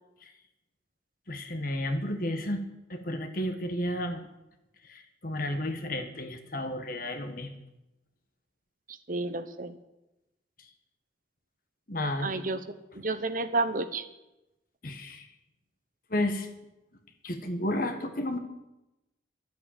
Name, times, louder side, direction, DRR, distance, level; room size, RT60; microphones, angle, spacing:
voice 1, 1.3-2.6 2.9-4.3 4.9-7.5 11.9-12.3 14.8-15.3 16.1-16.5 17.2-18.4, left 1 dB, 50° left, 6 dB, 1.5 m, -32 dB
voice 2, 9.1-9.8 12.2-14.1, right 3 dB, 45° right, 10 dB, 0.9 m, -31 dB
12.5 x 8.3 x 8.9 m, 0.95 s
head